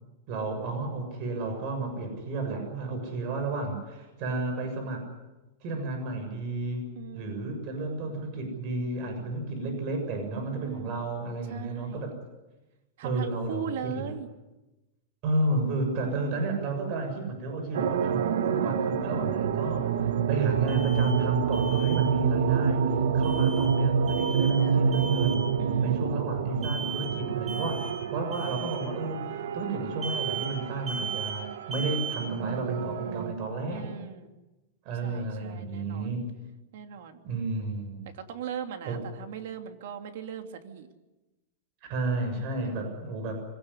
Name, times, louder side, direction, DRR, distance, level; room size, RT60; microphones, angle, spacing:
voice 1, 0.3-5.0 5.6-6.9 7.1-12.1 13.0-14.1 15.2-22.9 23.1-25.5 25.8-33.9 34.9-36.3 37.2-38.1 38.9-39.0 41.9-43.4, right 2 dB, 40° right, 5 dB, 7.1 m, -32 dB
voice 2, 7.0-7.6 10.4-11.1 11.5-12.1 13.0-14.3 16.0-16.5 24.5-25.2 25.6-26.1 33.7-34.3 35.0-36.2 36.7-37.2 38.1-40.9 42.6-43.1, right 8 dB, 65° right, 6 dB, 2.9 m, -40 dB
sound 1, 17.7-33.3, right 7 dB, 85° right, 1.4 m, -27 dB
Alarm, 20.7-21.1 21.5-22.0 23.2-23.7 24.1-24.6 24.9-25.4 26.6-27.1 27.5-27.9 28.3-28.8 30.0-30.5 30.9-31.3 31.7-32.2, right 4 dB, 15° right, 4.8 m, -36 dB
25.0 x 17.5 x 9.9 m, 1.0 s
supercardioid pair, 155°, 0 cm